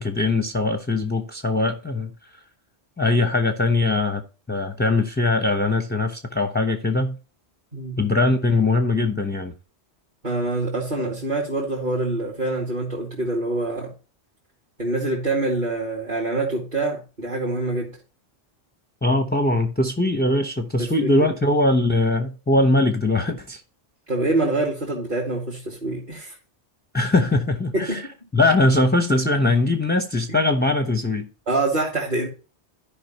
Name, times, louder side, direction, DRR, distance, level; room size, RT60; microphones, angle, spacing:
voice 1, 0.0-2.1 3.0-4.2 4.5-7.2 8.0-9.5 19.0-23.6 26.9-28.0 28.3-31.3, left 2 dB, 10° left, 0.8 m, -21 dB
voice 2, 7.7-8.0 10.2-13.9 14.8-18.0 20.8-21.2 24.1-26.4 27.7-28.1 30.3-30.4 31.5-32.3, right 2 dB, 40° right, 2.5 m, -25 dB
14.0 x 5.3 x 2.9 m
omnidirectional pair, 1.2 m